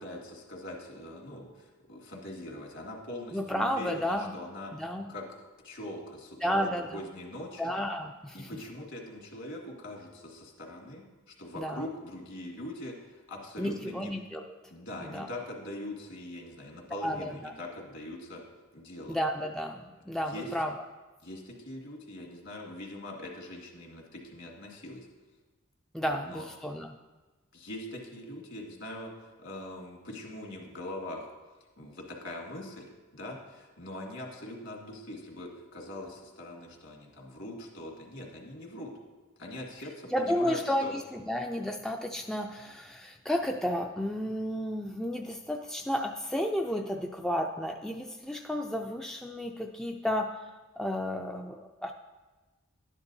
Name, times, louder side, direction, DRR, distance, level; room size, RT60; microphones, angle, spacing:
voice 1, 0.0-4.7 5.1-7.6 8.3-14.1 14.7-18.4 18.7-19.2 20.2-20.5 21.2-25.1 26.0-26.4 27.5-31.3 31.8-38.9 39.4-40.9, left 1 dB, 60° left, -1 dB, 2.1 m, -42 dB
voice 2, 3.3-4.3 4.8-5.1 6.4-7.0 7.6-8.5 11.6-11.8 13.6-14.6 15.0-15.3 17.0-17.5 19.1-20.7 25.9-26.9 40.1-50.5 50.8-51.9, equal, 5° left, 2 dB, 0.3 m, -32 dB
12.0 x 9.7 x 2.7 m, 1.2 s
head